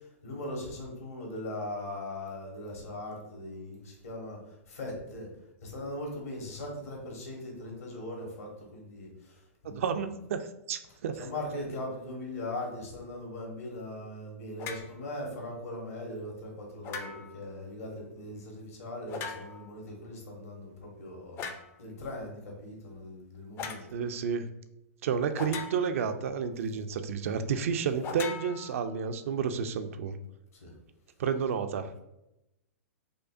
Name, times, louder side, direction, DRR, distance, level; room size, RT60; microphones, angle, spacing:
voice 1, 0.2-4.4 4.7-5.3 5.6-9.4 9.6-9.9 11.2-21.5 21.8-23.8 30.6-30.7, left 1 dB, 75° left, -1 dB, 1.3 m, -39 dB
voice 2, 9.6-11.3 23.9-24.5 25.0-30.2 31.2-31.9, right 6 dB, 65° right, 9 dB, 0.4 m, -31 dB
sound 1, 14.6-14.9 16.8-17.4 19.1-19.7 21.4-21.7 23.6-23.9 25.3-26.1 28.0-29.1, left 5 dB, 30° left, 0.4 m, -39 dB
5.0 x 2.1 x 2.4 m, 0.88 s
hypercardioid pair, 110°, 8 cm